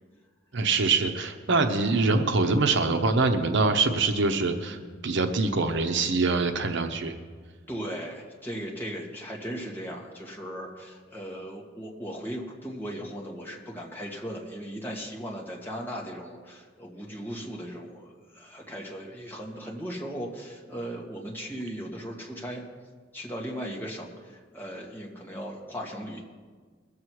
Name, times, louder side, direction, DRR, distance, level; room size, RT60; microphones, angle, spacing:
voice 1, 0.5-7.2, right 3 dB, 65° right, 6 dB, 0.9 m, -24 dB
voice 2, 7.7-22.6 23.1-26.2, equal, 10° left, -2 dB, 2.1 m, -37 dB
22.0 x 7.5 x 4.8 m, 1.5 s
head